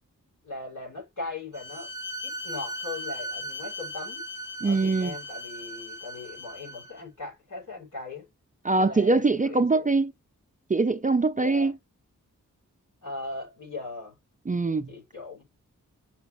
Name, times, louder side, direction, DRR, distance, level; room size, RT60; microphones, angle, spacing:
voice 1, 0.4-1.9 2.2-4.2 4.6-8.3 8.7-9.9 11.3-11.7 13.0-14.2 14.9-15.4, left 3 dB, 65° left, 6.0 m, -39 dB
Bowed string instrument, 1.5-7.0, equal, 30° left, 1.9 m, -37 dB
voice 2, 4.6-5.1 8.6-10.1 10.7-11.7 14.5-14.9, right 3 dB, 25° right, 0.5 m, -23 dB
8.0 x 6.1 x 3.1 m
cardioid pair, 45°, 33 cm